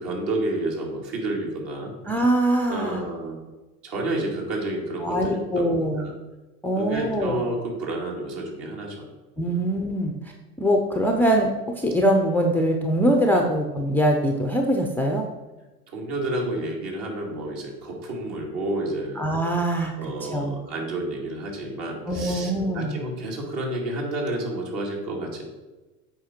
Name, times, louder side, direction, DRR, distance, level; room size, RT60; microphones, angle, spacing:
voice 1, 0.0-1.9 2.7-3.4 3.8-6.1 6.8-9.0 9.4-9.6 13.3-13.5 15.9-19.2 20.0-25.4, right 2 dB, 50° right, 0 dB, 2.4 m, -30 dB
voice 2, 2.0-3.1 5.0-6.1 6.6-7.4 9.4-10.3 10.6-15.3 19.2-19.9 20.2-20.5 22.1-23.0, right 1 dB, 5° left, 2 dB, 0.5 m, -23 dB
8.0 x 4.9 x 4.4 m, 1.1 s
hypercardioid pair, 95°, 46 cm